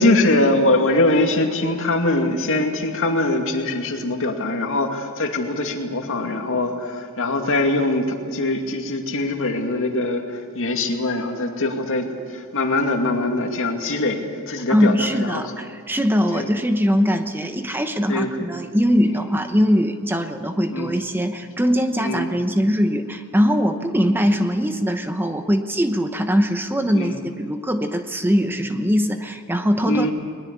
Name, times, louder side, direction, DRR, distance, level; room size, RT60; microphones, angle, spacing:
voice 1, 0.0-12.1 12.3-14.2 14.5-15.4 16.3-16.5 18.1-18.5 19.1-19.2 20.7-20.9 22.0-22.3 23.9-24.0 26.9-27.1 29.8-30.1, left 2 dB, 65° left, 4 dB, 2.4 m, -22 dB
voice 2, 14.7-30.1, equal, 10° right, 7 dB, 0.9 m, -21 dB
21.0 x 20.5 x 8.3 m, 2.2 s
head